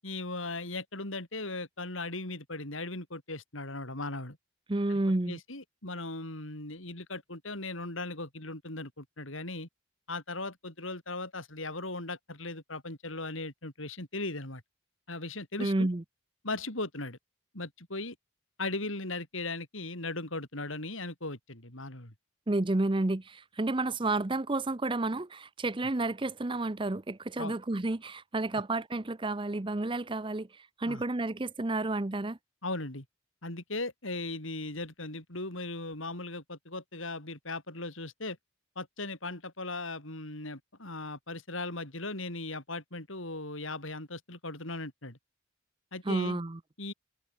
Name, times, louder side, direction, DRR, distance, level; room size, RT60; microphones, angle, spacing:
voice 1, 0.0-4.4 4.9-5.0 5.3-9.7 10.1-14.6 15.1-15.9 16.4-17.2 17.5-18.1 18.6-22.1 27.4-27.6 30.8-31.0 32.6-33.0 33.4-38.4 38.7-45.2 45.9-46.4 46.8-46.9, left 2 dB, 75° left, 6.8 m, -38 dB
voice 2, 4.7-5.4 15.6-16.0 22.5-32.4 46.1-46.6, right 2 dB, 25° right, 0.7 m, -31 dB
head